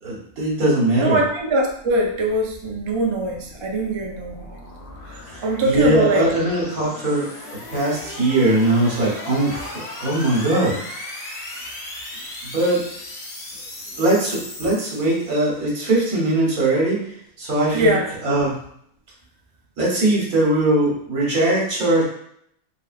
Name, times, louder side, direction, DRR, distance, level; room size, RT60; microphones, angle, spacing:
voice 1, 0.0-1.2 5.6-7.3 7.7-9.7 10.0-10.8 12.5-12.8 14.0-17.0 17.4-17.9 18.2-18.6 19.8-22.1, right 1 dB, 75° right, -4 dB, 1.9 m, -20 dB
voice 2, 1.0-4.4 5.4-6.3 17.7-18.1, right 2 dB, 50° right, 0 dB, 0.3 m, -21 dB
sound 1, 1.5-15.6, left 1 dB, 55° left, 1.0 m, -37 dB
4.2 x 3.8 x 2.4 m, 0.67 s
omnidirectional pair, 1.5 m